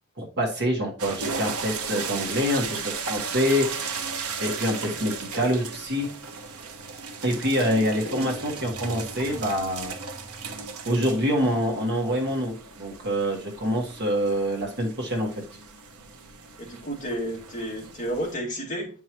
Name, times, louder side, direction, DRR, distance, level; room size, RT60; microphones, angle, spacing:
voice 1, 0.2-3.7 4.4-6.1 7.2-9.9 10.8-15.3, equal, 50° right, 0 dB, 1.5 m, -26 dB
sound 1, 1.0-18.4, right 5 dB, 70° right, 0.9 m, -36 dB
voice 2, 16.6-18.9, right 1 dB, 35° left, -4 dB, 2.3 m, -31 dB
9.5 x 4.7 x 3.0 m, 0.40 s
head